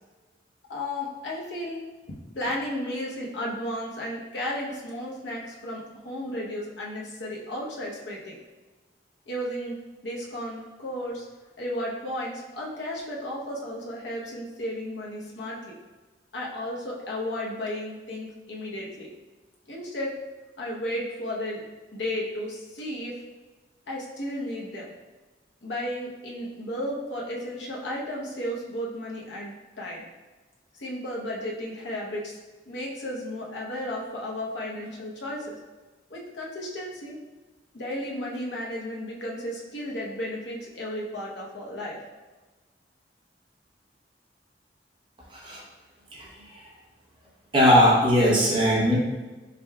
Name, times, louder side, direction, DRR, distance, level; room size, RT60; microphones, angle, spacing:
voice 1, 0.7-1.8 2.3-8.4 9.3-9.8 10.0-11.3 11.6-15.7 16.3-19.1 19.7-20.1 20.6-21.6 21.9-23.1 23.9-24.9 25.6-30.0 30.8-32.4 32.7-35.6 36.1-37.2 37.7-42.0, left 1 dB, 80° left, -3 dB, 0.8 m, -33 dB
voice 2, 47.5-49.0, equal, 25° right, -4 dB, 0.8 m, -19 dB
5.1 x 3.4 x 2.2 m, 1.2 s
head